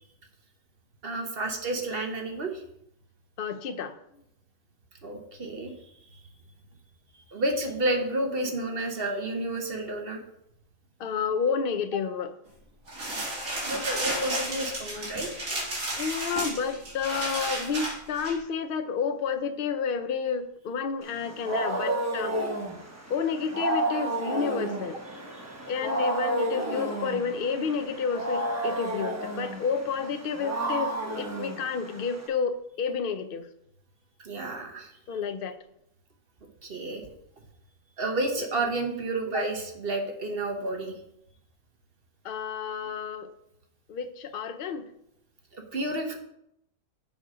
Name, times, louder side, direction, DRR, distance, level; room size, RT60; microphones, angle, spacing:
voice 1, 1.0-2.6 5.0-5.7 7.3-10.2 13.6-15.3 25.3-25.4 34.2-34.9 36.6-37.0 38.0-40.9 45.5-46.2, right 2 dB, 45° right, 3 dB, 1.1 m, -30 dB
voice 2, 3.4-3.9 11.0-12.3 15.9-22.4 23.1-25.0 25.7-33.5 35.1-35.6 42.2-43.3 43.9-44.8, left 6 dB, 70° left, 10 dB, 0.5 m, -30 dB
sound 1, 12.9-18.3, right 1 dB, 60° right, 2.8 m, -32 dB
Wild animals, 21.1-32.3, right 1 dB, 10° right, 0.9 m, -31 dB
7.4 x 5.1 x 4.9 m, 0.78 s
omnidirectional pair, 1.6 m